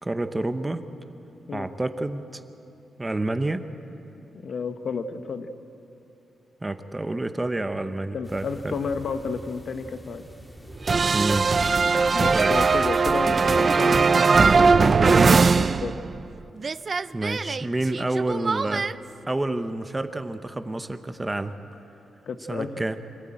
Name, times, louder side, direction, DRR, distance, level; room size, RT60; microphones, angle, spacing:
voice 1, 0.0-0.8 1.5-2.4 3.0-3.7 6.6-8.8 11.1-11.5 12.3-12.6 17.1-18.9 19.3-21.5 22.5-23.0, right 2 dB, 15° right, 9 dB, 0.9 m, -28 dB
voice 2, 4.3-5.5 8.1-10.2 12.1-15.9 22.3-22.7, left 5 dB, 55° left, 8 dB, 1.1 m, -32 dB
sound 1, 8.2-14.3, equal, 5° left, 2.1 m, -45 dB
common Sfx, 10.9-16.3 16.6-18.9, right 4 dB, 40° right, 0.4 m, -20 dB
25.5 x 14.0 x 8.9 m, 3.0 s
cardioid pair, 105°, 0 cm